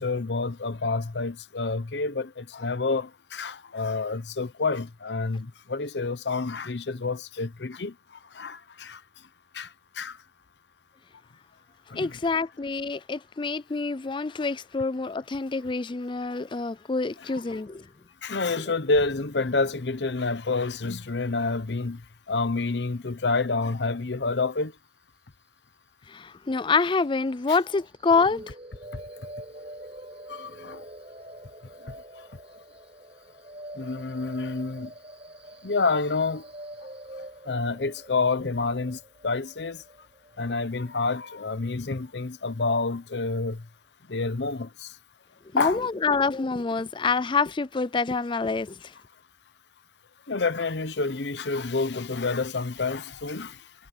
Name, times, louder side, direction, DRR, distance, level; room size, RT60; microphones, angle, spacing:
voice 1, 0.0-9.3 9.5-10.2 11.9-12.4 17.2-17.6 18.2-24.8 27.5-27.6 28.9-29.0 30.3-30.9 31.8-32.3 33.7-34.9 35.6-36.5 37.2-39.8 40.4-43.7 44.1-45.0 45.6-45.8 50.3-53.7, left 3 dB, 75° left, 0.9 m, -29 dB
voice 2, 12.0-17.8 26.1-28.4 45.5-48.7, left 4 dB, 30° left, 0.4 m, -26 dB
sound 1, 28.0-42.0, right 1 dB, 35° right, 4.4 m, -45 dB
head